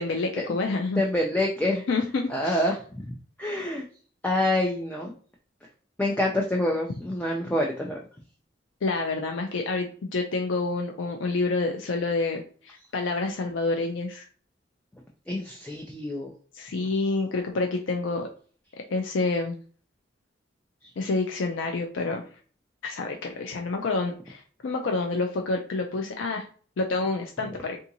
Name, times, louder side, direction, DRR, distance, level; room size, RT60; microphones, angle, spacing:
voice 1, 0.0-1.0 1.9-2.6 8.8-14.2 16.5-18.3 18.9-19.6 21.0-22.3 22.8-26.5 26.8-27.8, left 3 dB, 90° left, 3 dB, 0.4 m, -28 dB
voice 2, 1.0-1.8 2.3-3.1 3.4-3.8 4.2-5.1 6.0-8.0 15.3-16.3, left 1 dB, 10° left, -1 dB, 0.4 m, -26 dB
3.5 x 2.8 x 2.6 m, 0.41 s
head